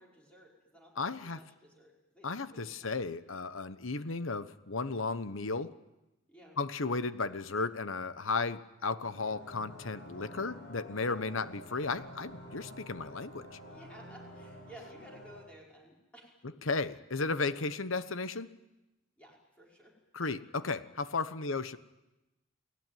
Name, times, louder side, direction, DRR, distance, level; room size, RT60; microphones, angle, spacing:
voice 1, 0.0-2.9 6.3-6.6 13.6-16.3 19.2-19.9, equal, 5° left, -3 dB, 5.5 m, -55 dB
voice 2, 1.0-1.4 2.2-5.7 6.6-13.5 16.6-18.5 20.1-21.8, left 4 dB, 75° left, 12 dB, 1.1 m, -34 dB
sound 1, 9.0-15.4, equal, 55° left, 7.5 m, -49 dB
29.0 x 18.5 x 9.3 m, 0.99 s
head